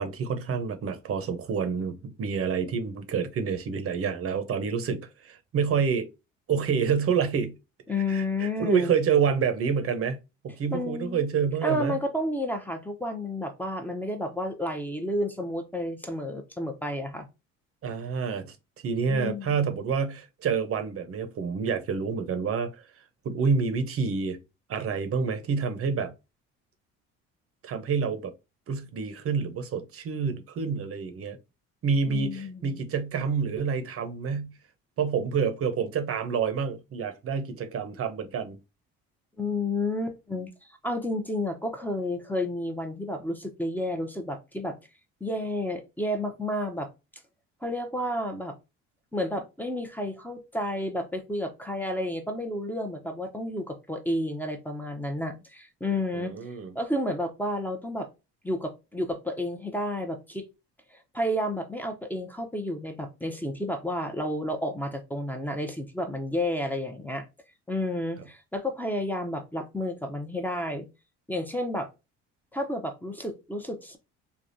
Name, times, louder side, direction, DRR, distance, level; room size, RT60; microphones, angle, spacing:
voice 1, 0.0-6.1 6.5-7.6 8.1-10.2 10.4-12.0 17.8-24.4 24.7-26.1 27.6-28.3 28.7-31.4 31.8-34.6 35.0-38.6 56.1-56.7, right 6 dB, 45° right, 0.8 m, -28 dB
voice 2, 7.9-9.0 10.7-11.2 11.6-17.2 19.1-19.5 32.1-32.8 39.4-40.5 40.8-44.8 45.2-46.9 47.6-48.5 49.1-56.3 56.7-58.1 58.4-60.4 60.9-67.2 67.7-70.9 71.3-71.9 72.5-74.0, left 1 dB, 5° left, 0.7 m, -31 dB
3.3 x 2.3 x 2.6 m
supercardioid pair, 75°, 31 cm